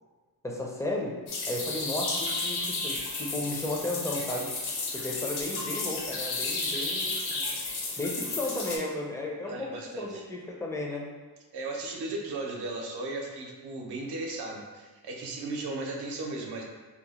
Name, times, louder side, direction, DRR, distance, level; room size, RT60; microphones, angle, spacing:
voice 1, 0.4-1.1 1.5-4.5 4.9-7.5 8.0-11.0, left 2 dB, 10° left, -2 dB, 0.4 m, -34 dB
sound 1, 1.3-8.8, left 3 dB, 80° left, 0.8 m, -32 dB
voice 2, 9.4-10.2 11.5-16.6, right 2 dB, 80° right, 0 dB, 0.7 m, -36 dB
2.8 x 2.1 x 4.0 m, 1.3 s
wide cardioid pair, 130°, 38 cm